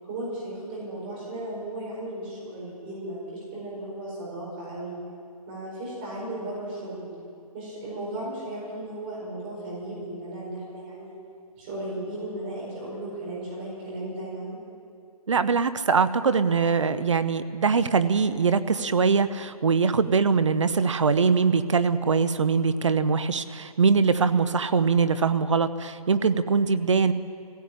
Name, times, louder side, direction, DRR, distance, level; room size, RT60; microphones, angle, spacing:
voice 1, 0.0-5.0 5.5-7.1 7.5-11.2 11.6-14.6, right 1 dB, 15° right, -5 dB, 4.7 m, -35 dB
voice 2, 15.3-27.1, right 5 dB, 55° right, 12 dB, 0.8 m, -22 dB
18.5 x 16.0 x 8.6 m, 2.4 s
hypercardioid pair, 175°, 19 cm